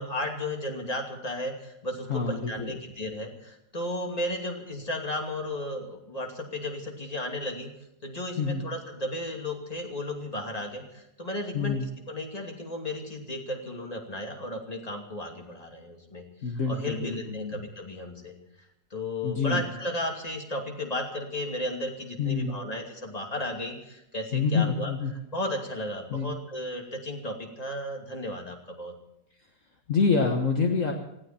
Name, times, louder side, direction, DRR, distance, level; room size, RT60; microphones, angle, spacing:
voice 1, 0.0-7.7 8.0-11.8 12.1-16.3 16.7-18.3 18.9-24.9 25.3-28.9, left 1 dB, 25° left, 2 dB, 2.6 m, -34 dB
voice 2, 2.1-2.7 8.4-8.6 11.5-11.9 16.4-17.6 19.2-19.6 22.2-22.6 24.3-25.1 26.1-26.3 29.9-30.9, left 4 dB, 55° left, 2 dB, 1.7 m, -27 dB
19.5 x 16.5 x 4.4 m, 0.84 s
omnidirectional pair, 1.7 m